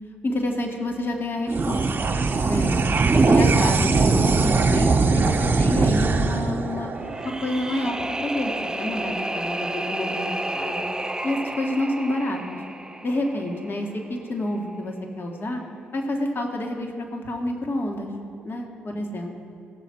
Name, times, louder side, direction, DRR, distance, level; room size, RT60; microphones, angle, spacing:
voice 1, 0.2-2.8 3.1-6.9 7.2-10.8 11.2-12.6 13.0-15.6 15.9-18.1 18.4-19.4, left 1 dB, 45° left, 2 dB, 1.9 m, -28 dB
sound 1, 1.5-8.2, right 3 dB, 40° right, 1.2 m, -21 dB
sound 2, 7.0-14.1, right 1 dB, 15° right, 0.6 m, -31 dB
18.0 x 7.2 x 4.6 m, 2.7 s
hypercardioid pair, 45°, 5 cm